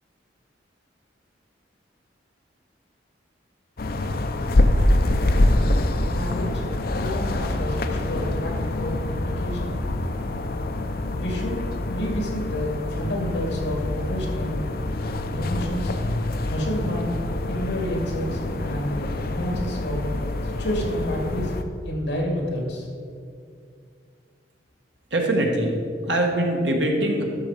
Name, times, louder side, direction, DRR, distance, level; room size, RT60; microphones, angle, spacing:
sound 1, 3.8-21.6, left 1 dB, 55° left, 0.6 m, -25 dB
voice 1, 6.1-6.6 6.9-9.7 11.2-14.6 15.2-15.9 16.5-17.2 17.4-20.1 20.4-21.5 21.8-22.9, equal, 70° left, 0 dB, 2.4 m, -29 dB
voice 2, 25.1-25.8 26.0-27.2, right 1 dB, 75° right, 1 dB, 1.6 m, -22 dB
12.0 x 6.6 x 4.8 m, 2.3 s
head